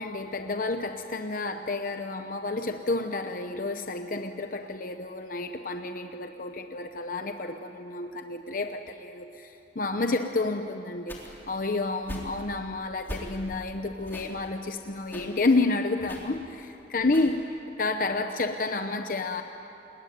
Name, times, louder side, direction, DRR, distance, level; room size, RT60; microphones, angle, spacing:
voice 1, 0.0-11.2 11.5-17.4 17.8-19.4, left 3 dB, 50° left, 6 dB, 0.9 m, -30 dB
sound 1, 11.1-11.5 12.0-12.4 13.0-13.7 14.0-14.3 15.0-15.3 16.0-16.4 17.0-17.4, equal, 10° left, 3.5 m, -41 dB
28.5 x 21.5 x 9.5 m, 3.0 s
head